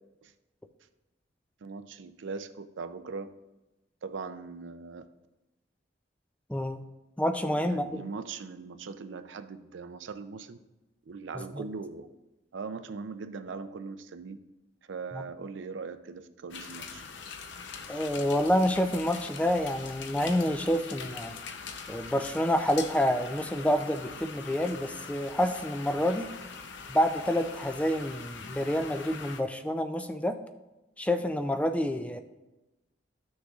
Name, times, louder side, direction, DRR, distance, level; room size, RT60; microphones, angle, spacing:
voice 1, 1.6-3.3 4.0-5.1 7.6-10.6 11.1-12.1 12.5-14.4 14.9-17.0, right 4 dB, 85° right, 10 dB, 0.5 m, -40 dB
voice 2, 6.5-6.8 7.2-8.0 11.4-11.6 15.1-15.2 17.9-21.4 21.9-26.3 26.9-30.4 31.0-32.2, equal, 5° left, 7 dB, 0.4 m, -28 dB
sound 1, 16.5-29.4, left 5 dB, 75° left, 0.6 m, -43 dB
13.0 x 6.3 x 2.4 m, 1.0 s
head